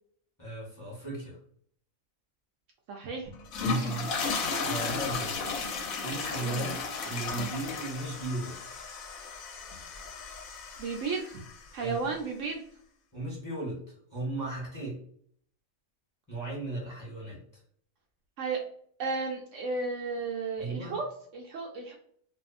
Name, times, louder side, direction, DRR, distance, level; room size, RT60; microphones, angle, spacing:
voice 1, 0.4-1.4 3.6-5.4 6.0-8.6 11.8-12.1 13.1-13.8 14.1-15.0 16.3-17.4 20.6-21.0, right 2 dB, 15° left, -5 dB, 1.1 m, -36 dB
voice 2, 2.9-3.3 6.4-6.7 10.8-11.4 11.7-12.6 18.4-18.6 19.0-21.1 21.3-22.0, right 4 dB, 70° right, 0 dB, 0.9 m, -33 dB
sound 1, 3.3-11.7, left 4 dB, 85° left, 1.1 m, -34 dB
2.6 x 2.4 x 2.4 m, 0.62 s
omnidirectional pair, 1.4 m